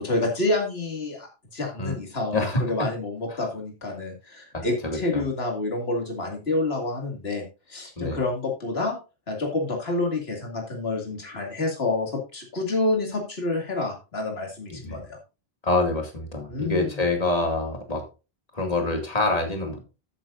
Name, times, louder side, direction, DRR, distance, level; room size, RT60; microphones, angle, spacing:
voice 1, 0.0-9.0 9.3-15.2 16.5-17.0, left 2 dB, 75° left, 1 dB, 2.5 m, -28 dB
voice 2, 2.3-2.9 3.3-3.4 4.5-5.2 8.0-8.2 14.7-15.0 15.6-18.1 18.5-19.8, left 2 dB, 40° left, 3 dB, 2.5 m, -26 dB
12.5 x 8.8 x 2.6 m, 0.30 s
omnidirectional pair, 1.0 m